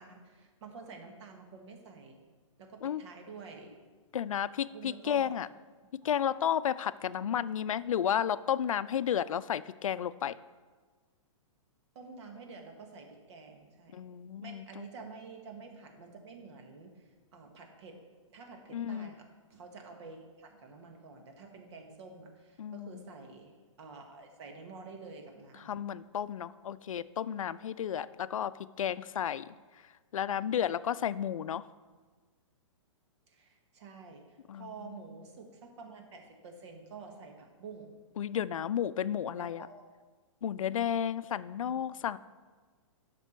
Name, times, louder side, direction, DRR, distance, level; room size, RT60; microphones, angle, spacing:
voice 1, 0.0-2.2 2.6-3.8 4.7-5.4 6.0-6.1 7.2-7.4 12.0-14.0 14.4-18.0 18.3-25.8 33.3-38.0 39.4-39.8 40.5-40.6 41.6-41.7, right 4 dB, 60° right, 3 dB, 1.8 m, -49 dB
voice 2, 4.1-5.5 6.0-10.4 13.9-14.9 18.7-19.1 22.6-23.1 25.6-29.5 30.1-31.7 34.5-34.7 38.2-39.7 40.4-42.2, left 9 dB, 90° left, 17 dB, 0.4 m, -32 dB
11.0 x 6.0 x 4.6 m, 1.4 s
hypercardioid pair, 140°, 17 cm